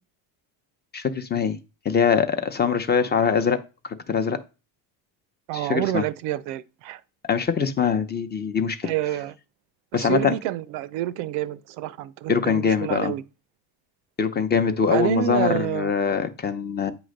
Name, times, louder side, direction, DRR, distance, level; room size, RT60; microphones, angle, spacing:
voice 1, 0.9-1.6 1.8-3.6 3.8-4.4 5.5-6.0 7.3-8.9 9.9-10.3 12.3-13.1 14.2-16.9, left 6 dB, 20° left, 0.7 m, -23 dB
voice 2, 5.5-7.0 8.8-9.3 9.9-13.2 14.9-15.9, right 13 dB, 80° right, 0.7 m, -28 dB
9.0 x 3.1 x 6.4 m
cardioid pair, 135°, 44 cm